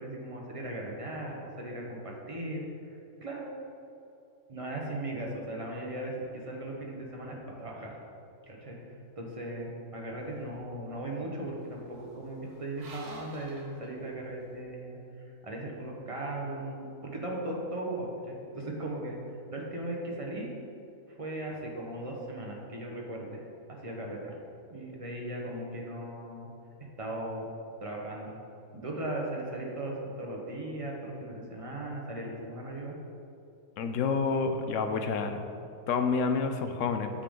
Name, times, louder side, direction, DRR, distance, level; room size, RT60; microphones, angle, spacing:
voice 1, 0.0-2.6 3.2-3.5 4.5-8.0 8.5-15.0 15.4-20.5 21.1-23.4 23.7-24.4 24.7-26.5 27.0-27.5 27.8-28.3 28.7-33.0, right 1 dB, 25° right, -2 dB, 1.0 m, -38 dB
sound 1, 10.2-14.6, right 2 dB, 55° right, 1.4 m, -54 dB
voice 2, 33.8-35.5 35.9-37.1, left 5 dB, 65° left, 7 dB, 0.8 m, -28 dB
8.6 x 6.8 x 3.8 m, 2.7 s
omnidirectional pair, 1.7 m